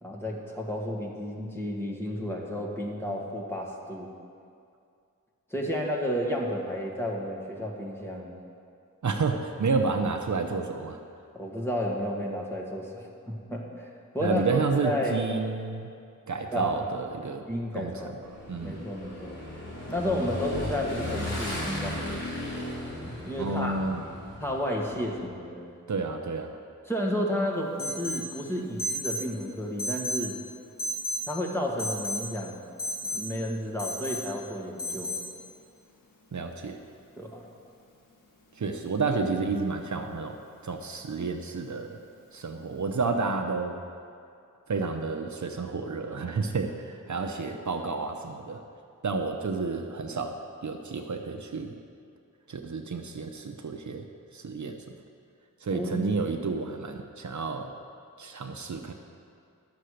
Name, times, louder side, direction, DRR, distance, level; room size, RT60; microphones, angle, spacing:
voice 1, 0.0-4.1 5.5-8.4 11.3-13.9 14.1-15.2 16.5-16.8 17.5-18.1 18.6-19.4 19.9-22.1 23.2-23.7 24.4-25.7 26.9-30.4 31.3-32.6 33.0-35.2 37.2-37.4 55.7-56.2, equal, 5° left, -2 dB, 1.7 m, -32 dB
voice 2, 9.0-11.0 14.2-15.9 16.3-17.5 17.7-18.1 18.5-18.9 23.4-24.0 25.9-26.6 36.3-36.8 38.6-40.4 40.6-42.0 42.3-43.8 44.7-48.6 49.0-51.8 52.5-54.1 54.3-55.0 55.6-57.7 58.2-58.9, right 4 dB, 60° right, 4 dB, 0.7 m, -30 dB
Motorcycle / Engine, 18.2-25.3, left 1 dB, 55° left, 2.7 m, -36 dB
Alarm, 27.8-28.3 28.8-29.3 29.8-30.3 30.8-31.3 31.8-32.3 32.8-33.2 33.8-34.2 34.8-35.2, left 1 dB, 85° left, 1.6 m, -32 dB
11.5 x 6.8 x 6.4 m, 2.4 s
wide cardioid pair, 75°, 32 cm